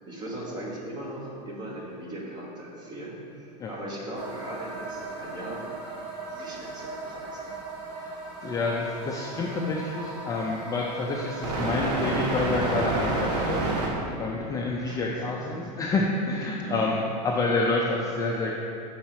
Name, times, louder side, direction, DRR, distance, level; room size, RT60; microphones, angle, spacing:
voice 1, 0.0-5.7 6.3-7.5 14.9-15.6 16.6-16.9, right 1 dB, 20° right, -3 dB, 1.2 m, -39 dB
sound 1, 4.2-13.9, right 2 dB, 75° right, 1.3 m, -32 dB
voice 2, 8.4-18.5, left 3 dB, 15° left, -2 dB, 0.4 m, -28 dB
5.6 x 4.1 x 5.9 m, 2.7 s
supercardioid pair, 145°, 21 cm